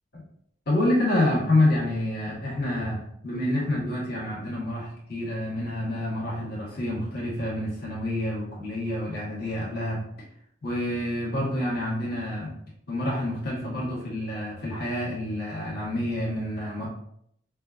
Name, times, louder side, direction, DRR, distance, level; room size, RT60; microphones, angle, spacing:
voice 1, 0.7-10.1 10.6-12.5 12.9-16.8, left 1 dB, 55° left, -6 dB, 1.3 m, -28 dB
5.5 x 2.3 x 2.3 m, 0.71 s
head